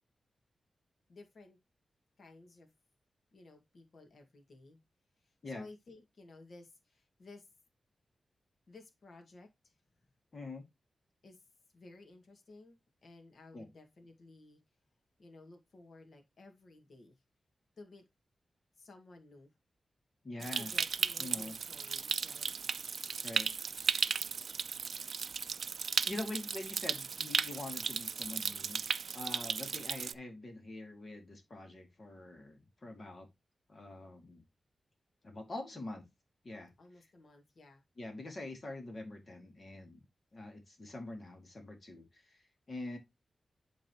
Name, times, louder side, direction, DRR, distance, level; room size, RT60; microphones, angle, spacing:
voice 1, 1.1-1.6 2.2-2.7 3.3-4.8 5.2-7.5 8.7-9.8 11.2-11.5 11.7-14.6 15.2-17.2 17.8-18.0 18.8-19.5 20.4-22.8 36.8-37.8, left 2 dB, 55° left, 1.9 m, -56 dB
voice 2, 10.3-10.6 13.5-13.7 20.2-20.7 21.2-21.6 23.2-23.5 26.0-28.8 29.1-33.3 33.7-34.4 35.2-36.1 36.4-36.7 38.0-40.0 40.3-43.0, left 2 dB, 35° left, 2.6 m, -44 dB
Stream, 20.4-30.1, right 6 dB, 65° right, 0.4 m, -35 dB
11.0 x 3.9 x 2.9 m
wide cardioid pair, 155°, 0 cm